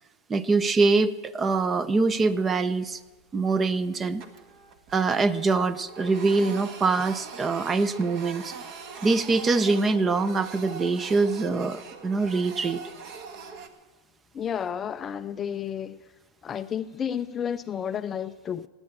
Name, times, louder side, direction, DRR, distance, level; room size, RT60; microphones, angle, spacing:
voice 1, 0.3-3.0 3.3-4.2 4.9-8.5 9.0-12.8, right 3 dB, 20° right, 0.6 m, -24 dB
Printer, 2.1-2.7 3.1-3.2 3.6-5.2 5.5-13.7, right 5 dB, 45° right, 1.4 m, -42 dB
voice 2, 14.3-16.0 16.4-18.7, left 8 dB, 25° left, 0.4 m, -31 dB
17.5 x 9.6 x 7.5 m
supercardioid pair, 135°, 0 cm